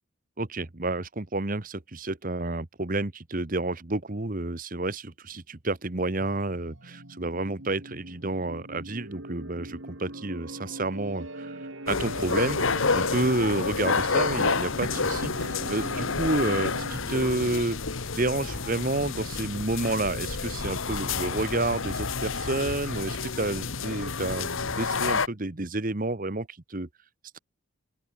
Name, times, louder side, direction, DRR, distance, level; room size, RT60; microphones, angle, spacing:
voice 1, 0.4-17.8 18.1-26.9, right 2 dB, 40° right, 1.2 m, -30 dB
sound 1, 6.2-17.6, right 1 dB, 60° right, 3.6 m, -42 dB
sound 2, 11.9-25.3, left 4 dB, 65° left, 1.4 m, -29 dB
open air
head